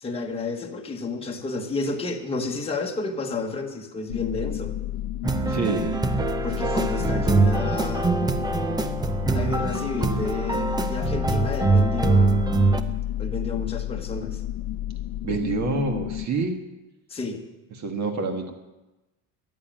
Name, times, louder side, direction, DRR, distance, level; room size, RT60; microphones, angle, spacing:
voice 1, 0.0-4.8 6.4-8.2 9.3-12.4 13.2-14.4 17.1-17.4, left 3 dB, 15° left, 1 dB, 1.2 m, -31 dB
sound 1, 4.1-16.3, left 13 dB, 70° left, 0.9 m, -31 dB
sound 2, 5.2-12.8, right 3 dB, 10° right, 0.5 m, -23 dB
voice 2, 5.5-6.0 6.7-6.8 15.2-16.6 17.8-18.5, right 4 dB, 40° right, 4 dB, 1.7 m, -27 dB
14.0 x 10.5 x 9.0 m, 1.1 s
cardioid pair, 175°, 42 cm